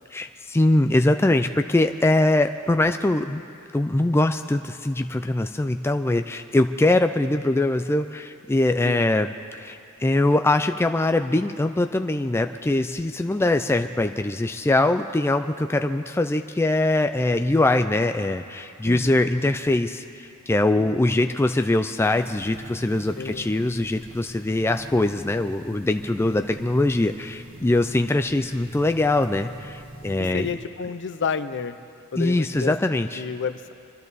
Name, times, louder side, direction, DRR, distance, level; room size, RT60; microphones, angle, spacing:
voice 1, 0.1-3.4 3.7-30.5 32.2-33.2, left 2 dB, 10° left, 7 dB, 0.3 m, -22 dB
voice 2, 18.8-19.3 20.7-21.3 23.2-23.5 30.2-31.8 32.1-33.7, left 5 dB, 55° left, 11 dB, 0.6 m, -31 dB
sound 1, 22.0-30.5, right 1 dB, 65° right, 1.5 m, -43 dB
25.5 x 12.5 x 4.1 m, 2.5 s
head